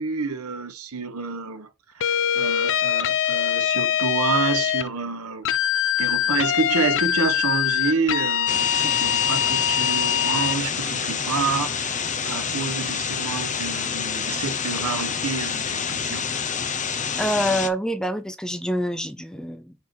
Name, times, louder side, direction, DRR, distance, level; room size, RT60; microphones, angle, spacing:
voice 1, 0.0-1.7 2.0-5.5 6.0-16.3, right 4 dB, 80° right, 1.3 m, -28 dB
sound 1, 2.0-4.9 5.4-10.6, left 10 dB, 60° left, 0.6 m, -23 dB
sound 2, 8.5-17.7, left 6 dB, 35° left, 0.9 m, -28 dB
voice 2, 17.2-19.7, equal, 5° left, 0.6 m, -26 dB
5.8 x 4.5 x 4.6 m
head